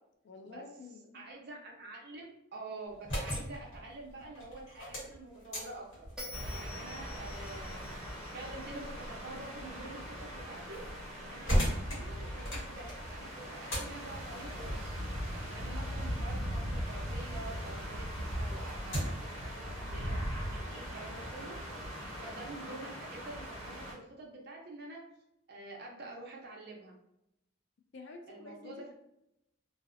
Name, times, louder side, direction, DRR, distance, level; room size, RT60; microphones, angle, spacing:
voice 1, 0.2-1.3 27.9-28.9, left 3 dB, 60° left, 4 dB, 0.4 m, -50 dB
voice 2, 1.1-5.9 6.5-7.9 8.3-10.8 11.2-15.0 15.5-21.6 22.2-25.0 25.5-27.0 28.3-28.9, right 2 dB, 50° right, -1 dB, 0.6 m, -47 dB
sound 1, 2.9-17.6 18.0-19.4, equal, 75° left, 1.1 m, -39 dB
Bell, 6.2-9.4, left 2 dB, 5° right, 0.6 m, -49 dB
sound 2, 6.3-23.9, equal, 75° right, 0.9 m, -40 dB
2.7 x 2.0 x 2.5 m, 0.82 s
head